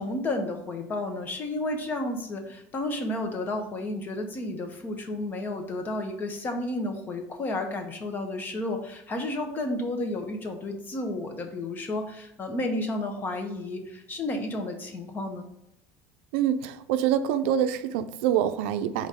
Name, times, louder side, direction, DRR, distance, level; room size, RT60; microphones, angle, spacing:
voice 1, 0.0-15.5, left 2 dB, 30° left, 5 dB, 1.2 m, -32 dB
voice 2, 16.3-19.1, right 10 dB, 85° right, 10 dB, 0.5 m, -25 dB
5.2 x 3.9 x 5.2 m, 0.81 s
supercardioid pair, 120°, 6 cm